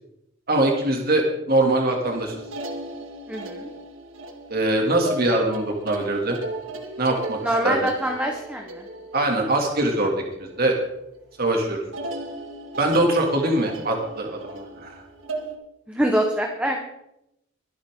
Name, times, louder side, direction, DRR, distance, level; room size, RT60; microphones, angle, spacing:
voice 1, 0.5-2.3 4.5-6.4 7.0-7.9 9.1-10.1 10.4-10.8 11.4-11.8 12.8-14.9, right 1 dB, 50° right, 1 dB, 2.7 m, -22 dB
sound 1, 2.0-10.8 11.1-11.5 11.9-15.6, right 2 dB, 85° right, 1.7 m, -36 dB
voice 2, 3.3-3.7 7.4-8.8 15.9-16.8, right 1 dB, 5° right, 1 dB, 1.3 m, -24 dB
23.0 x 8.7 x 3.8 m, 0.85 s
head